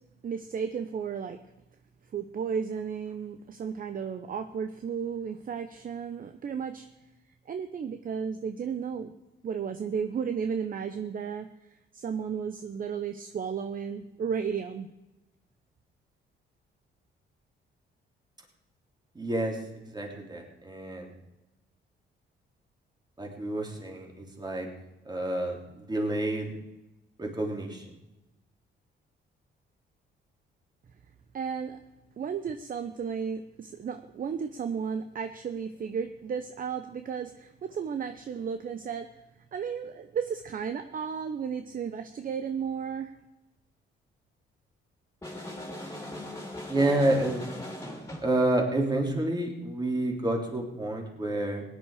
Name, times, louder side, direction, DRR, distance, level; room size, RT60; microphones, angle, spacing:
voice 1, 0.2-1.4 2.1-6.9 7.5-9.1 9.4-14.9 31.3-31.8 32.2-39.1 39.5-43.2, right 6 dB, 45° right, 8 dB, 0.8 m, -34 dB
voice 2, 19.1-19.6 19.9-21.1 23.2-24.7 25.0-26.5 27.2-27.9 46.7-47.4 48.2-51.6, right 1 dB, 20° right, 0 dB, 3.3 m, -29 dB
sound 1, 45.2-48.4, left 1 dB, 15° left, 3.0 m, -39 dB
17.5 x 10.0 x 5.0 m, 0.97 s
cardioid pair, 90°, 20 cm